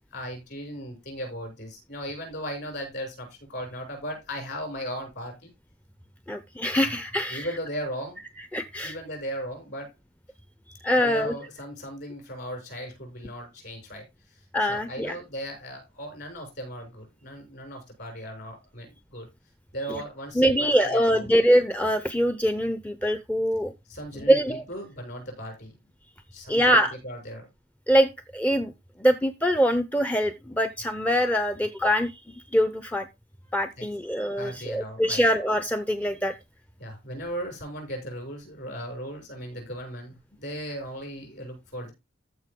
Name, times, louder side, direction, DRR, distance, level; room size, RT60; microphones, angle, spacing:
voice 1, 0.1-5.5 7.3-8.2 8.8-9.9 11.0-14.1 14.7-19.3 19.7-21.3 23.9-25.8 26.3-27.5 33.8-33.9 34.4-35.2 36.8-41.9, equal, 55° left, 3 dB, 6.5 m, -37 dB
voice 2, 6.3-7.5 8.5-8.9 10.8-11.3 14.5-15.2 19.9-20.0 20.3-23.7 24.3-24.6 26.5-26.9 27.9-28.7 29.0-33.1 33.5-36.3, equal, 5° left, 9 dB, 0.6 m, -23 dB
14.0 x 5.4 x 3.7 m, 0.23 s
head